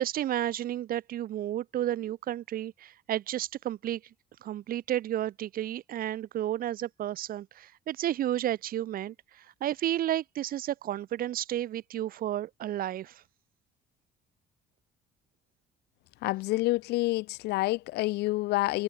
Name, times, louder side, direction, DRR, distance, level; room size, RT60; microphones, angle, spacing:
voice 1, 0.0-4.0 4.4-13.2, right 12 dB, 60° right, 1.1 m, -32 dB
voice 2, 16.2-18.8, left 19 dB, 80° left, 0.5 m, -28 dB
cardioid pair, 110°, 17 cm